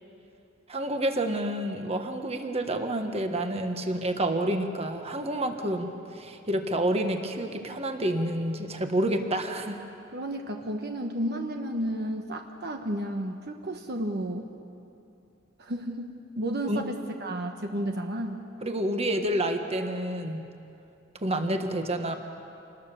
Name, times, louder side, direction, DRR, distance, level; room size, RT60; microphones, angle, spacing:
voice 1, 0.7-9.8 16.7-16.8 18.6-20.5 21.2-22.1, right 1 dB, 30° right, 5 dB, 1.5 m, -29 dB
voice 2, 10.1-14.5 15.6-18.4, right 1 dB, 55° right, 4 dB, 1.2 m, -32 dB
26.5 x 20.0 x 7.0 m, 2.7 s
head